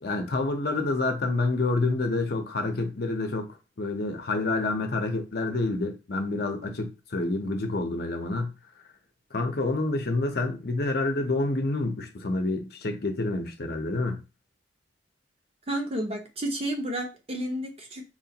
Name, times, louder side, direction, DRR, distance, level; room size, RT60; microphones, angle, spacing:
voice 1, 0.0-8.5 9.3-14.2, left 2 dB, 60° left, 0.7 m, -28 dB
voice 2, 15.7-18.0, right 1 dB, 35° right, 0.8 m, -31 dB
4.4 x 2.4 x 2.8 m
head